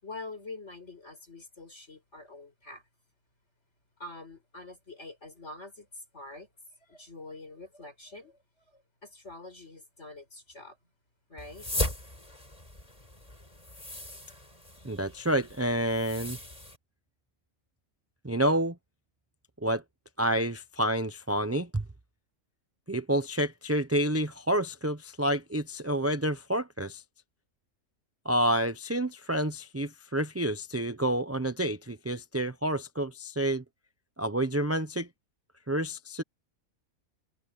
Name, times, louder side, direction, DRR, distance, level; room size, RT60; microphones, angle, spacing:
voice 1, 0.0-2.8 4.0-6.5 6.8-8.4 8.7-10.8 11.3-11.7, left 2 dB, 50° left, 5.8 m, -45 dB
sound 1, 11.4-16.8, left 1 dB, 25° left, 4.5 m, -38 dB
voice 2, 14.8-16.4 18.2-18.8 19.6-19.8 20.2-21.8 22.9-27.0 28.2-33.6 34.2-35.1 35.7-36.2, right 1 dB, 15° right, 0.6 m, -29 dB
omnidirectional pair, 1.5 m